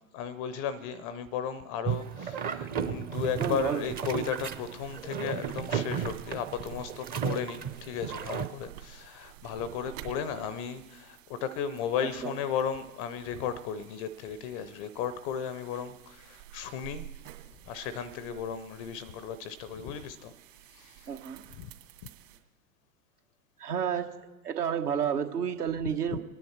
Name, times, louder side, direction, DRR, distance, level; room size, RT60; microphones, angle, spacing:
voice 1, 0.1-17.1 17.7-20.3 20.7-21.1 21.6-21.7 26.1-26.2, left 7 dB, 25° left, 15 dB, 0.4 m, -35 dB
sound 1, 1.8-8.5, right 7 dB, 20° right, 0.6 m, -34 dB
sound 2, 3.1-22.4, right 13 dB, 50° right, 2.2 m, -51 dB
voice 2, 3.4-3.9 12.0-12.4 21.1-21.4 23.6-24.2 24.4-26.2, right 8 dB, 75° right, 5 dB, 1.6 m, -31 dB
26.5 x 9.8 x 4.4 m, 1.2 s
figure-of-eight pair, 100°, 47 cm